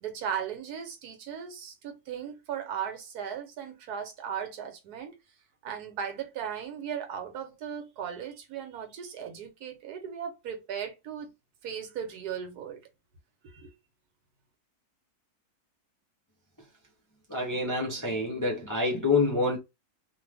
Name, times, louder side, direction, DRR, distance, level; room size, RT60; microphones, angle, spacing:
voice 1, 0.0-5.1 5.6-11.3 11.6-12.8 13.4-13.7, right 8 dB, 80° right, 1.3 m, -37 dB
voice 2, 17.3-19.6, left 3 dB, 20° left, 0.5 m, -27 dB
2.6 x 2.5 x 3.3 m
omnidirectional pair, 1.6 m